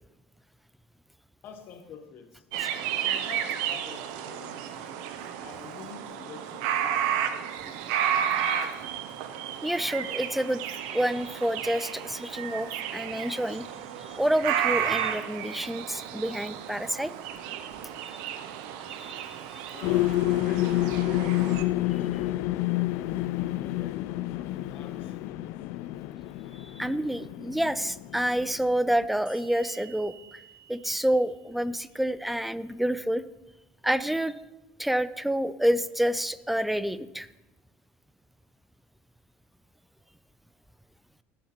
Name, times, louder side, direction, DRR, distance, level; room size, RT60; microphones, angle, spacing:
voice 1, 1.4-2.4 3.0-4.9 5.4-7.1 7.4-8.0 19.7-22.4 23.3-24.0 24.6-25.5, left 6 dB, 50° left, 6 dB, 1.0 m, -47 dB
sound 1, 2.5-21.6, right 9 dB, 90° right, 0.7 m, -32 dB
voice 2, 9.6-13.7 14.0-17.1 18.9-19.4 26.5-30.4 30.7-33.2 33.8-34.3 34.8-37.3, right 1 dB, 5° right, 15 dB, 0.3 m, -28 dB
sound 2, 19.8-29.0, left 16 dB, 70° left, 0.3 m, -29 dB
sound 3, 29.3-32.6, right 7 dB, 20° right, 3.2 m, -53 dB
16.5 x 7.3 x 3.0 m, 1.0 s
cardioid pair, 140°, 4 cm